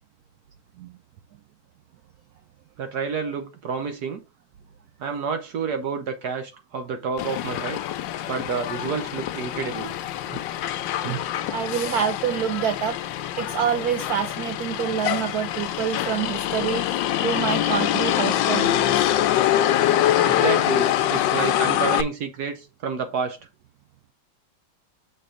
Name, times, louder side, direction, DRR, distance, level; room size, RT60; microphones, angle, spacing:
voice 1, 2.8-4.2 5.0-7.8 8.3-9.9 17.0-17.1 20.2-23.4, right 5 dB, 60° right, 1.2 m, -29 dB
Motor vehicle (road), 7.2-22.0, left 12 dB, 75° left, 1.2 m, -24 dB
voice 2, 11.5-13.0 13.4-19.1 20.0-20.1, right 8 dB, 80° right, 0.8 m, -27 dB
6.7 x 3.7 x 5.0 m
omnidirectional pair, 2.2 m